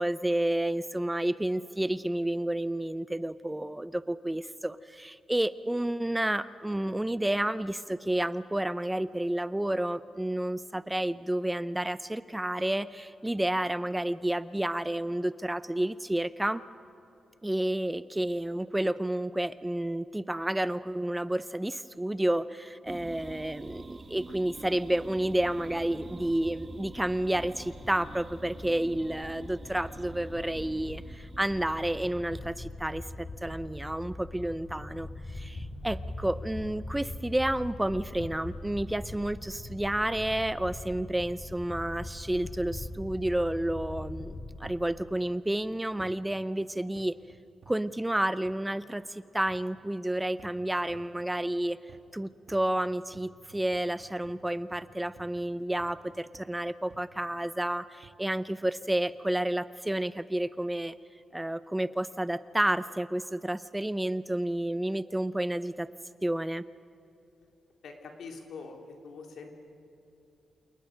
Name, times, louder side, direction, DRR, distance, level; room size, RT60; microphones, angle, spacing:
voice 1, 0.0-16.6 17.4-47.2 47.7-51.8 52.1-60.9 61.3-65.9 66.2-66.6, right 1 dB, 10° right, 15 dB, 0.5 m, -30 dB
sound 1, 22.9-32.3, right 3 dB, 30° right, 1.3 m, -47 dB
sound 2, 25.2-44.6, left 2 dB, 40° left, 3.8 m, -42 dB
sound 3, 44.6-44.9 46.0-46.3 47.0-47.9 48.5-48.7 49.5-49.8 50.4-51.2 51.9-52.2 52.5-56.1 56.3-56.6 56.9-57.3 58.0-58.3 59.1-59.4 60.0-60.1, right 6 dB, 65° right, 1.6 m, -55 dB
voice 2, 67.8-68.8 69.0-69.6, left 4 dB, 75° left, 3 dB, 3.3 m, -44 dB
28.5 x 19.5 x 6.4 m, 2.7 s
wide cardioid pair, 130°, 0 cm